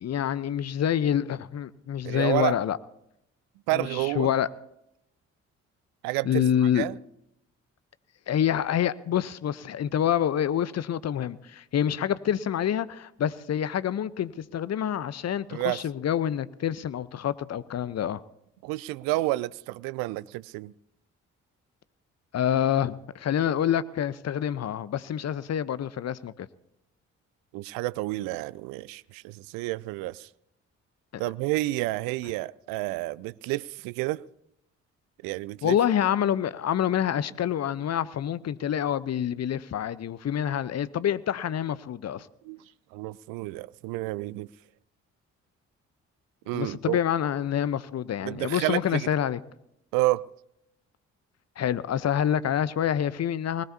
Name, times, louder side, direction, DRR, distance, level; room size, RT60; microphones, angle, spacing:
voice 1, 0.0-2.8 3.7-4.5 6.2-6.9 8.3-18.2 22.3-26.5 35.6-42.3 46.5-49.4 51.6-53.6, left 9 dB, 40° left, 0.8 m, -27 dB
voice 2, 2.0-2.5 3.7-4.3 6.0-7.0 15.5-15.8 18.6-20.7 27.5-30.3 31.2-34.3 35.2-35.8 42.4-42.6 42.9-44.5 46.5-47.0 48.2-49.1 49.9-50.2, right 19 dB, 65° right, 0.5 m, -30 dB
20.0 x 18.5 x 2.8 m
figure-of-eight pair, 40°, 39 cm